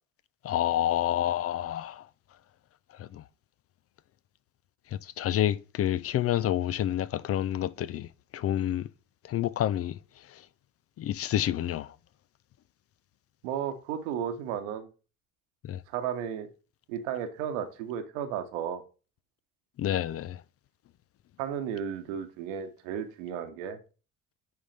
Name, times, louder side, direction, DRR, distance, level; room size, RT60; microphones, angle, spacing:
voice 1, 0.4-2.0 5.2-8.1 8.3-8.8 9.3-9.9 11.0-11.9 15.7-15.8 19.8-20.4, left 12 dB, 40° left, 0.5 m, -28 dB
voice 2, 13.4-14.9 15.9-16.5 16.9-18.8 21.4-23.8, right 8 dB, 70° right, 1.2 m, -34 dB
9.4 x 3.8 x 3.2 m
figure-of-eight pair, 50°, 39 cm